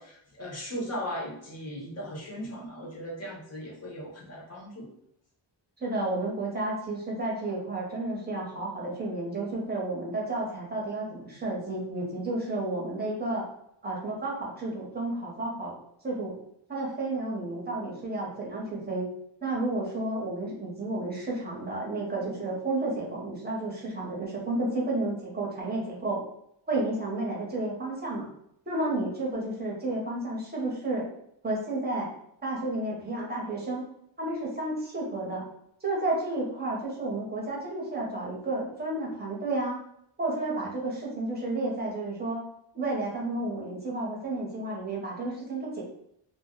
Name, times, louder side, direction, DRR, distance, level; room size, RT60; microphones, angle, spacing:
voice 1, 0.0-4.9, equal, 35° left, -3 dB, 0.8 m, -38 dB
voice 2, 5.8-13.5 13.8-15.7 16.0-16.4 16.7-19.1 19.4-26.2 26.7-28.3 28.7-31.1 31.4-32.1 32.4-33.8 34.2-35.4 35.8-39.8 40.2-42.4 42.7-45.8, right 2 dB, 20° right, -3 dB, 0.9 m, -31 dB
2.3 x 2.2 x 3.6 m, 0.72 s
wide cardioid pair, 165°, 45 cm